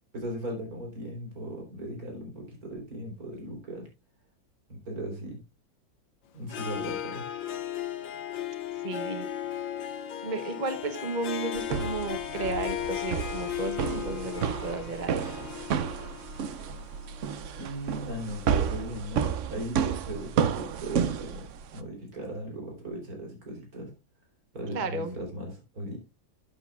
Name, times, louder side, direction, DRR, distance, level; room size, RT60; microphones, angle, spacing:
voice 1, 0.1-3.9 4.7-5.4 6.3-7.3 17.6-21.5 21.7-23.9 24.5-26.0, right 1 dB, 50° right, 2 dB, 4.3 m, -37 dB
Harp, 6.4-18.3, left 11 dB, 85° left, 1.7 m, -36 dB
voice 2, 8.8-9.6 10.2-15.2 24.7-25.2, right 3 dB, 35° right, 9 dB, 0.8 m, -34 dB
sound 1, 11.6-21.8, right 7 dB, 65° right, 0.7 m, -31 dB
13.0 x 8.4 x 2.4 m, 0.23 s
omnidirectional pair, 2.0 m